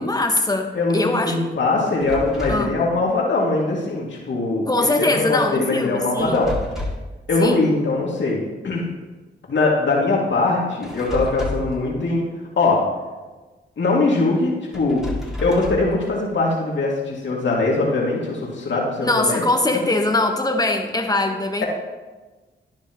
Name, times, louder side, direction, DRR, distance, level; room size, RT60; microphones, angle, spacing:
voice 1, 0.0-1.4 2.5-2.7 4.7-6.4 7.4-7.6 19.0-21.6, left 2 dB, 20° left, 3 dB, 1.5 m, -22 dB
voice 2, 0.7-4.7 5.0-6.5 7.3-8.4 8.6-8.9 9.5-12.2 12.6-12.8 13.8-15.0 15.4-19.4 19.7-19.8, left 3 dB, 70° left, -3 dB, 2.5 m, -21 dB
sound 1, 2.0-2.7 6.2-7.2 10.8-11.8 14.7-16.0, left 2 dB, ahead, 2.5 m, -30 dB
12.0 x 9.7 x 3.1 m, 1.2 s
cardioid pair, 50°, 20 cm